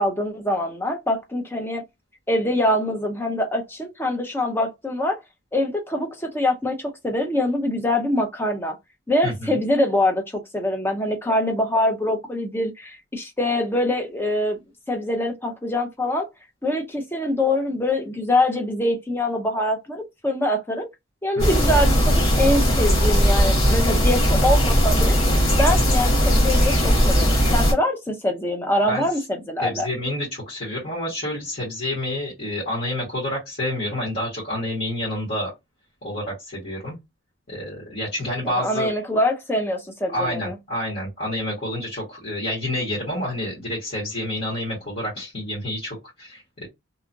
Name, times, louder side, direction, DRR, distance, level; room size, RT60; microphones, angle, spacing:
voice 1, 0.0-1.8 2.3-5.2 5.5-8.7 9.1-10.2 10.5-14.6 14.9-16.3 16.6-20.9 21.2-25.2 25.6-29.9 38.4-40.6, left 1 dB, 10° left, 0.5 m, -24 dB
voice 2, 9.2-9.6 21.3-21.7 28.8-29.1 29.6-35.5 36.0-37.0 37.5-38.9 40.1-46.7, left 1 dB, 45° left, 1.4 m, -29 dB
snow-rain-bird-chirping, 21.4-27.7, equal, 90° left, 1.4 m, -18 dB
2.9 x 2.4 x 2.5 m
head